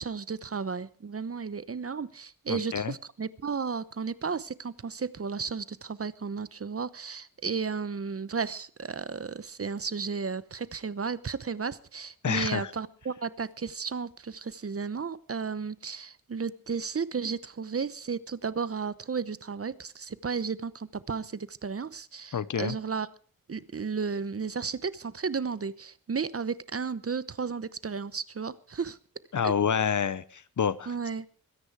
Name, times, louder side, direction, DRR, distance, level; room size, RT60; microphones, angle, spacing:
voice 1, 0.0-23.1 23.5-29.0 29.4-29.5 30.9-31.3, right 5 dB, 40° right, 16 dB, 0.9 m, -33 dB
voice 2, 2.5-2.9 12.2-12.7 22.3-22.8 29.3-30.9, left 7 dB, 60° left, 16 dB, 1.0 m, -28 dB
22.5 x 10.0 x 4.8 m, 0.43 s
cardioid pair, 70°, 34 cm